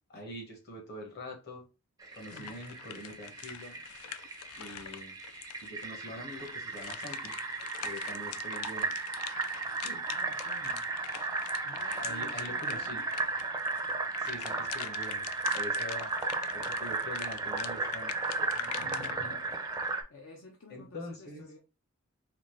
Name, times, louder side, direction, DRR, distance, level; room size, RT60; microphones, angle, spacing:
voice 1, 0.1-1.6 2.1-3.8 4.6-5.2 5.6-7.3 7.8-8.9 9.8-10.0 12.0-13.0 14.2-16.1 16.5-18.1 18.8-19.4 20.7-21.4, left 1 dB, 50° left, 1.4 m, -44 dB
Fill (with liquid), 2.0-20.0, right 3 dB, 15° right, 0.5 m, -35 dB
sound 1, 2.2-6.0 6.3-19.1, left 11 dB, 90° left, 0.3 m, -44 dB
voice 2, 10.1-10.8 11.6-13.1 18.5-19.6 20.1-21.6, left 3 dB, 70° left, 0.7 m, -51 dB
4.2 x 2.6 x 3.1 m
head